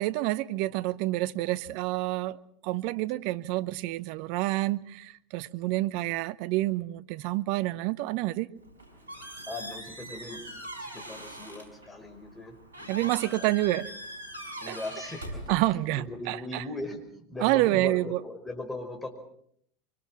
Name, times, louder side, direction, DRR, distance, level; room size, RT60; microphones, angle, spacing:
voice 1, 0.0-2.4 2.6-8.5 12.9-13.9 14.7-14.8 15.5-16.6 17.4-18.2, right 18 dB, 60° right, 0.8 m, -28 dB
Squeak, 8.6-16.1, equal, 90° right, 5.5 m, -42 dB
voice 2, 9.5-10.4 10.8-13.4 14.6-15.4 16.0-19.1, left 2 dB, 15° left, 5.3 m, -39 dB
24.5 x 23.0 x 6.2 m
hypercardioid pair, 85°, 0 cm